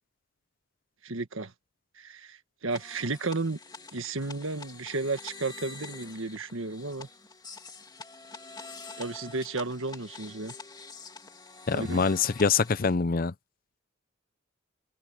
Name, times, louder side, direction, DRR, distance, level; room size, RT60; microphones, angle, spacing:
voice 1, 1.0-1.5 2.0-3.6 3.9-7.1 9.0-10.5 11.7-12.0, right 3 dB, 85° right, 1.6 m, -33 dB
sound 1, 2.7-13.0, left 4 dB, 20° left, 2.8 m, -46 dB
voice 2, 11.7-13.3, left 5 dB, 45° left, 0.6 m, -25 dB
head